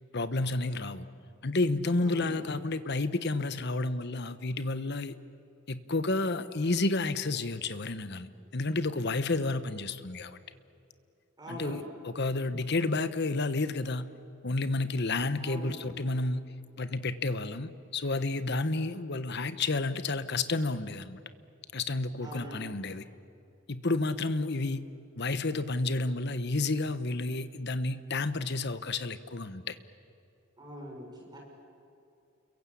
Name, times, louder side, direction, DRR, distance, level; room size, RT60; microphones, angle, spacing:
voice 1, 0.1-1.1 1.4-5.1 5.7-10.4 11.5-14.1 14.4-16.4 16.8-21.2 21.7-23.0 23.7-24.9 25.2-29.8, left 2 dB, 50° left, 12 dB, 1.2 m, -31 dB
voice 2, 2.0-2.4 11.4-11.9 15.4-15.9 22.2-22.7 30.6-31.4, right 1 dB, 20° right, -1 dB, 6.8 m, -43 dB
29.5 x 23.0 x 8.6 m, 2.7 s
head